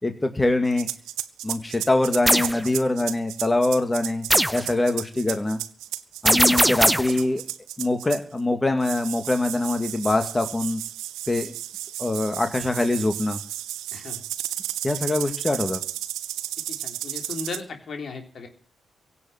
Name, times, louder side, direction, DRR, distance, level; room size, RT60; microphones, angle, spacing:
voice 1, 0.0-0.9 1.4-4.3 4.5-5.6 6.2-7.4 7.8-10.8 11.3-11.5 12.0-13.4 14.8-15.8, left 2 dB, 20° left, 6 dB, 2.3 m, -23 dB
sound 1, 0.7-8.4 8.8-17.6, right 13 dB, 85° right, 0.8 m, -33 dB
sound 2, 2.3-2.6 4.3-4.7 6.3-7.2, right 1 dB, 5° right, 0.7 m, -19 dB
voice 2, 13.9-14.2 16.7-18.5, left 4 dB, 60° left, 4 dB, 3.7 m, -36 dB
17.0 x 7.1 x 9.3 m, 0.43 s
hypercardioid pair, 45°, 0 cm